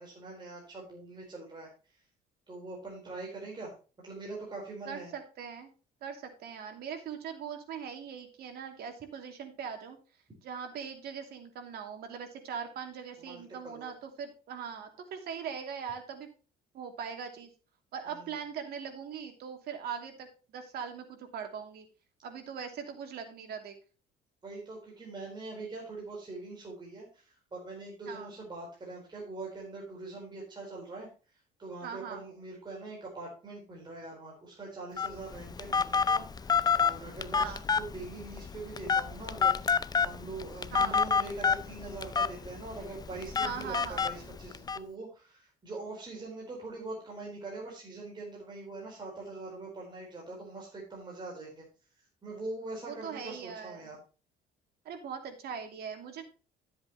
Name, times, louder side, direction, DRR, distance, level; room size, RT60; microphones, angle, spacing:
voice 1, 0.0-2.0 2.5-5.1 13.2-13.9 18.1-18.3 24.4-31.1 31.6-51.7 52.2-54.0, right 3 dB, 25° right, -2 dB, 4.4 m, -43 dB
voice 2, 4.9-5.7 6.0-10.0 10.4-16.3 16.7-17.5 17.9-21.9 22.2-23.8 28.1-28.3 31.8-32.2 37.3-37.6 40.7-41.0 43.4-44.0 52.9-53.9 54.8-56.2, right 7 dB, 70° right, 5 dB, 2.8 m, -41 dB
Telephone, 35.0-44.8, left 6 dB, 25° left, 0.5 m, -29 dB
13.0 x 7.9 x 3.1 m, 0.34 s
cardioid pair, 110°, 17 cm